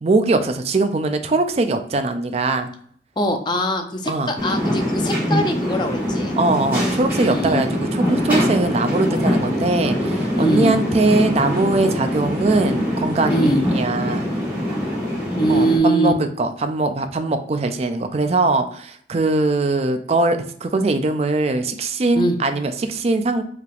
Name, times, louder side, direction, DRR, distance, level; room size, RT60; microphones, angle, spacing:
voice 1, 0.0-2.7 4.1-4.3 6.3-14.3 15.5-23.4, right 2 dB, 35° right, 8 dB, 0.4 m, -21 dB
voice 2, 3.2-6.4 7.1-7.6 10.3-10.7 13.3-13.6 15.4-16.1 22.1-22.4, right 1 dB, 25° left, 5 dB, 0.5 m, -22 dB
sound 1, 4.4-15.8, equal, 10° right, 1.6 m, -23 dB
4.7 x 3.4 x 2.4 m, 0.62 s
head